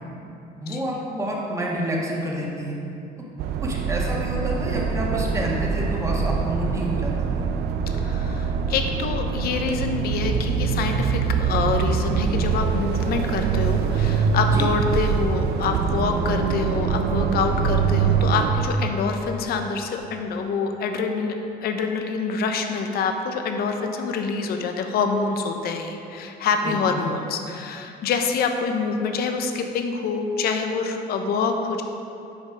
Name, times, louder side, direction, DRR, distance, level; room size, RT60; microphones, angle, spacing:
voice 1, 0.6-2.8 3.2-3.3 3.6-7.5 14.5-14.7 26.6-27.1, equal, 20° right, -3 dB, 1.6 m, -29 dB
sound 1, 3.4-18.5, right 6 dB, 75° right, 0.6 m, -24 dB
voice 2, 8.0-21.3 21.6-31.8, left 5 dB, 65° left, 5 dB, 0.8 m, -26 dB
8.9 x 5.4 x 5.0 m, 2.8 s
cardioid pair, 110°, 17 cm